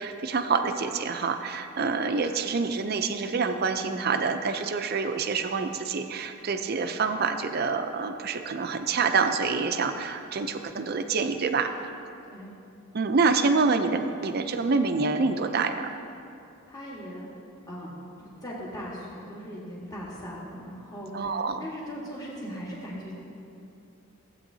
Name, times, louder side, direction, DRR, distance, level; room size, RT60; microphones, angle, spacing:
voice 1, 0.0-11.7 12.9-15.9 21.1-21.7, right 4 dB, 45° right, 7 dB, 0.5 m, -27 dB
voice 2, 16.6-17.3 17.7-17.9 18.2-23.1, equal, 15° left, -6 dB, 1.4 m, -39 dB
15.0 x 8.3 x 2.7 m, 2.6 s
head